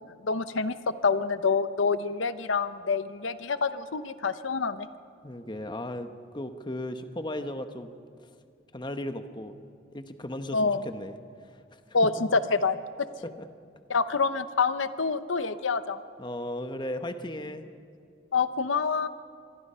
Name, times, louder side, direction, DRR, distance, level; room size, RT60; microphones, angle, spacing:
voice 1, 0.2-0.7 1.0-4.9 10.5-10.8 11.9-12.8 13.9-16.0 18.3-19.1, left 4 dB, 85° left, 12 dB, 0.8 m, -26 dB
voice 2, 5.2-7.9 8.7-9.5 9.9-11.2 11.5-11.8 13.2-13.5 16.2-17.6, left 1 dB, 25° left, 8 dB, 1.1 m, -36 dB
26.0 x 22.0 x 5.6 m, 2.4 s
head